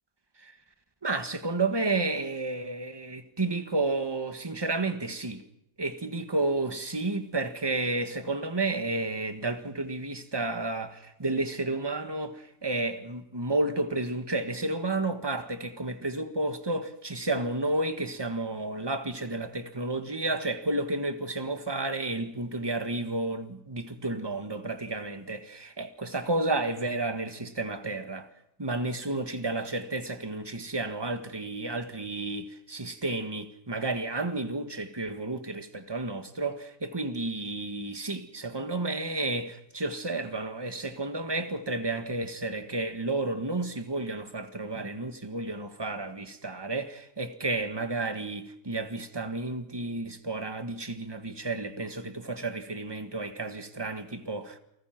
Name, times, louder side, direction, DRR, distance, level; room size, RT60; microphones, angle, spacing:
voice 1, 1.0-5.4 5.8-28.3 28.6-54.6, right 2 dB, 20° right, 1.5 m, -31 dB
29.5 x 19.5 x 6.0 m
omnidirectional pair, 1.4 m